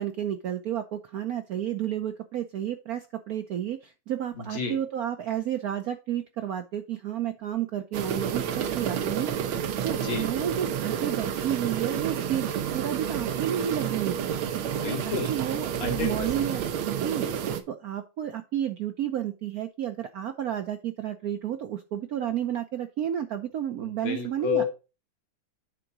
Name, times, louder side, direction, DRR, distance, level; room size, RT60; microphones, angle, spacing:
voice 1, 0.0-14.4 15.1-17.3 17.7-24.6, right 10 dB, 70° right, 7 dB, 0.8 m, -31 dB
voice 2, 4.4-4.8 9.8-10.3 14.8-15.3 15.8-16.3 23.8-24.6, left 6 dB, 80° left, 4 dB, 2.6 m, -31 dB
sound 1, 7.9-17.6, right 8 dB, 85° right, 1.7 m, -30 dB
9.9 x 3.8 x 4.6 m, 0.30 s
omnidirectional pair, 2.2 m